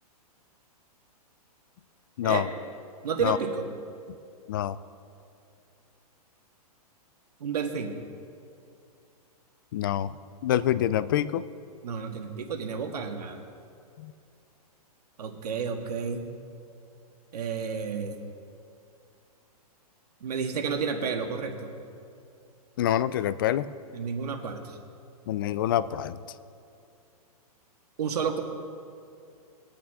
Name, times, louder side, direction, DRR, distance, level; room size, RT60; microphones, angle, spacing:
voice 1, 2.2-2.5 3.2-3.4 4.5-4.8 9.7-10.1 10.4-11.4 14.0-14.1 22.8-23.7 25.3-26.2, left 11 dB, 35° left, 15 dB, 0.4 m, -26 dB
voice 2, 3.0-3.7 7.4-7.9 11.8-13.4 15.2-16.2 17.3-18.2 20.2-21.6 23.9-24.8 28.0-28.4, right 6 dB, 85° right, 4 dB, 1.7 m, -31 dB
22.0 x 8.4 x 3.6 m, 2.5 s
hypercardioid pair, 170°, 20 cm